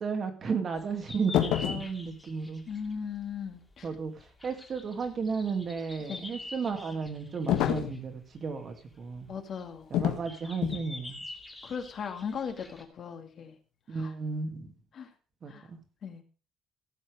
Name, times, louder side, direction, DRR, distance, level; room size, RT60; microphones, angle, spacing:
voice 1, 0.0-2.7 3.8-9.3 9.9-11.2 13.9-14.7 15.4-15.8, right 5 dB, 35° right, 6 dB, 2.2 m, -34 dB
sound 1, 0.8-12.8, left 2 dB, 10° left, 2.4 m, -46 dB
sound 2, 1.3-1.9 7.5-8.0 9.9-10.3 10.6-10.9, left 11 dB, 75° left, 1.6 m, -27 dB
voice 2, 2.7-3.9 6.1-6.3 9.3-9.9 11.6-13.6 13.9-14.1 14.9-15.1 15.5-15.7 16.0-16.2, left 6 dB, 40° left, 5 dB, 2.1 m, -38 dB
16.5 x 7.5 x 5.0 m, 0.36 s
cardioid pair, 160°, 0 cm